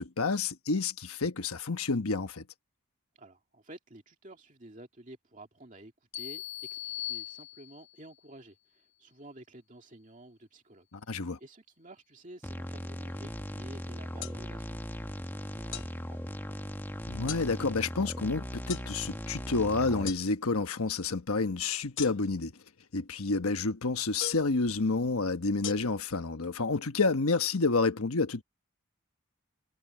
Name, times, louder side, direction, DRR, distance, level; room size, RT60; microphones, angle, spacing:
voice 1, 0.0-2.4 10.9-11.4 17.1-22.5 22.9-28.4, left 3 dB, 85° left, 1.2 m, -29 dB
voice 2, 3.1-6.4 6.7-10.9 11.1-16.6, right 1 dB, 35° right, 2.4 m, -52 dB
sound 1, 6.1-8.0, left 14 dB, 30° left, 1.4 m, -39 dB
sound 2, 12.4-20.1, equal, 10° left, 1.5 m, -39 dB
sound 3, 14.2-14.4 15.7-15.9 17.3-17.5 18.7-18.9 20.1-20.2 22.0-22.4 24.2-24.5 25.6-25.7, left 10 dB, 60° left, 0.9 m, -38 dB
head